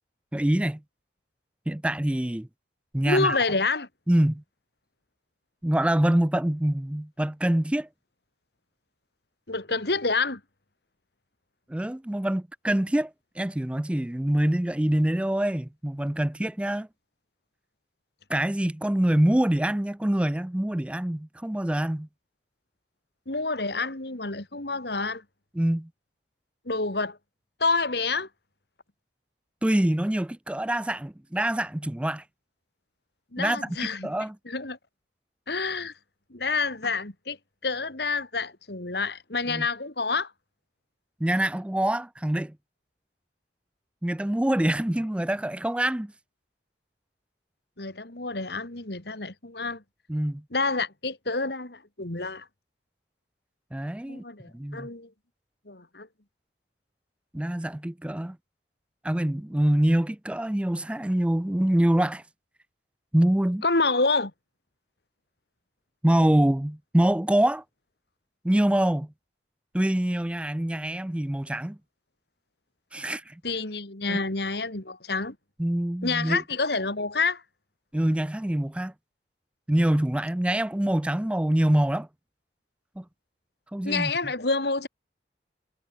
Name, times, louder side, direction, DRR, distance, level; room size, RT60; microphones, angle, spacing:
voice 1, 0.3-0.8 1.7-2.5 2.9-3.4 4.1-4.4 5.6-7.9 11.7-16.9 18.3-22.1 25.5-25.9 29.6-32.2 33.4-33.6 34.0-34.4 39.5-39.7 41.2-42.6 44.0-46.1 50.1-50.4 53.7-54.2 54.5-54.9 57.3-58.4 59.0-62.2 63.1-63.6 66.0-67.6 68.4-69.1 69.7-71.8 72.9-73.4 74.1-74.2 75.6-76.4 77.9-78.9 79.7-82.1 83.0-83.1 83.7-84.3, right 1 dB, 5° right, 0.3 m, -25 dB
voice 2, 3.0-3.9 9.5-10.4 23.3-25.2 26.7-27.2 27.6-28.3 33.3-34.1 34.5-34.8 35.5-35.9 36.3-37.4 37.6-40.3 47.8-49.8 50.5-52.5 54.1-55.1 55.7-56.1 63.6-64.3 73.4-75.4 76.0-77.4 83.8-84.9, left 3 dB, 60° left, 2.5 m, -28 dB
head